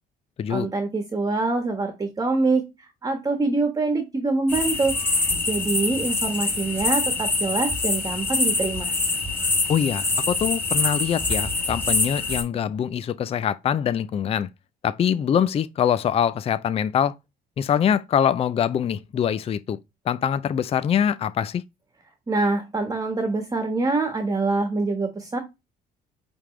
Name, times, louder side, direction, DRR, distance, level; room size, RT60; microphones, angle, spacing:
voice 1, 0.5-2.6 3.0-5.0 5.5-8.9 22.3-25.4, right 3 dB, 20° right, 1.4 m, -25 dB
sound 1, 4.5-12.4, left 3 dB, 10° left, 3.2 m, -25 dB
voice 2, 9.7-14.5 14.8-17.1 17.6-19.8 20.1-21.6, left 8 dB, 35° left, 0.4 m, -24 dB
8.7 x 3.6 x 3.2 m
cardioid pair, 110°, 17 cm